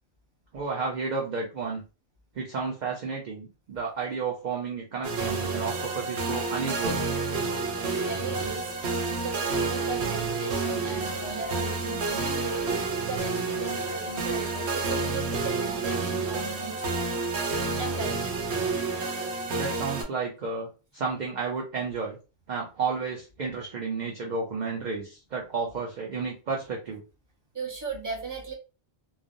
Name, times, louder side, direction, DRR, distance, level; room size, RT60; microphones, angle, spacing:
voice 1, 0.5-1.8 2.4-7.0 9.1-9.2 19.5-22.2 22.5-27.0, right 4 dB, 50° right, -1 dB, 0.6 m, -32 dB
sound 1, 5.0-20.0, right 3 dB, 75° right, 0.9 m, -29 dB
voice 2, 7.8-8.8 9.2-17.0 17.8-18.4 27.5-28.5, right 4 dB, 20° right, -4 dB, 0.9 m, -37 dB
3.2 x 2.1 x 2.5 m, 0.32 s
omnidirectional pair, 1.1 m